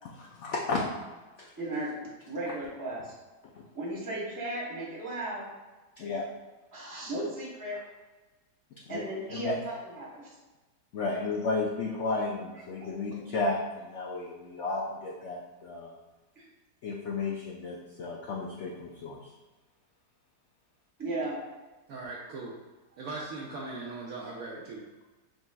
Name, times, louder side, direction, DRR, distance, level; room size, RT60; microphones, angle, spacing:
voice 1, 0.0-0.8 1.4-1.5 6.0-6.3 8.9-9.0 9.3-9.6 10.9-15.9 16.8-19.3, left 3 dB, 75° left, -1 dB, 0.6 m, -33 dB
voice 2, 1.6-3.1 3.7-5.5 6.7-7.8 8.9-10.3 16.3-16.4 21.0-21.4, right 1 dB, 15° right, -5 dB, 1.0 m, -35 dB
voice 3, 21.9-22.6 23.0-24.8, right 3 dB, 70° right, -3 dB, 0.9 m, -39 dB
5.1 x 3.7 x 2.2 m, 1.2 s
omnidirectional pair, 1.8 m